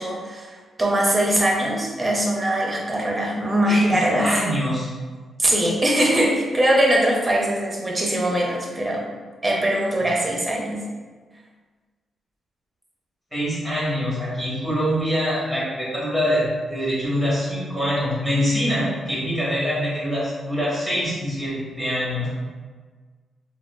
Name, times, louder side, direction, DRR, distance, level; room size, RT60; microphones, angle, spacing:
voice 1, 0.0-4.3 5.4-9.1 9.4-10.8, right 1 dB, 20° right, -2 dB, 0.7 m, -21 dB
voice 2, 3.6-4.9 13.3-22.3, equal, 5° left, -8 dB, 1.4 m, -24 dB
3.5 x 2.3 x 2.3 m, 1.5 s
cardioid pair, 80°, 0 cm